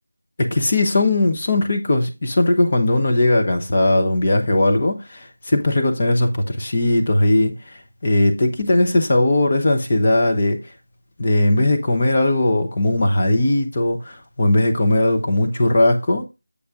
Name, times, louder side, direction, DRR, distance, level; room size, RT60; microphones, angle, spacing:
voice 1, 0.4-7.5 8.0-10.6 11.2-16.2, left 1 dB, 25° left, 1.0 m, -18 dB
8.2 x 5.5 x 3.7 m
figure-of-eight pair, 180°, 0 cm